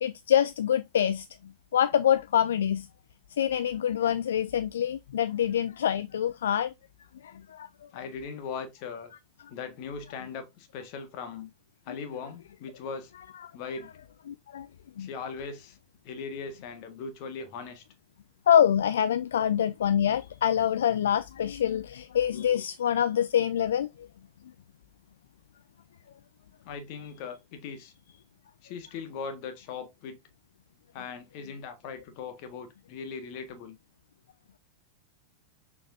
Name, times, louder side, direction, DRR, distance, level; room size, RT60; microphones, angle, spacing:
voice 1, 0.0-1.3 1.7-2.9 3.4-6.7 7.2-7.7 13.4-13.5 14.3-14.7 15.0-15.1 18.5-23.9, left 9 dB, 65° left, 0.3 m, -25 dB
voice 2, 7.9-9.1 9.5-11.5 11.8-13.1 13.5-13.9 15.0-15.8 16.0-17.8 26.6-27.9 28.6-30.2 30.9-33.8, left 5 dB, 45° left, 1.6 m, -39 dB
6.9 x 5.2 x 2.6 m
figure-of-eight pair, 90°, 0 cm